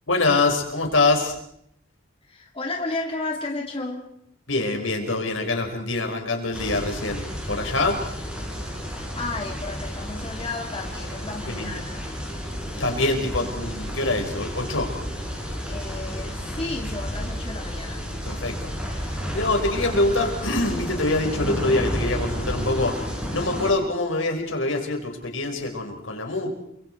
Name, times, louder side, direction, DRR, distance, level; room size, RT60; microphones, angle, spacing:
voice 1, 0.1-1.4 4.5-8.0 11.5-11.8 12.7-14.9 18.2-26.5, left 2 dB, 70° left, 3 dB, 5.0 m, -25 dB
voice 2, 2.3-4.0 8.9-12.2 15.7-18.0, left 2 dB, 30° left, 0 dB, 2.6 m, -33 dB
sound 1, 6.5-23.7, equal, 5° right, 5.7 m, -31 dB
29.5 x 24.5 x 4.6 m, 0.73 s
head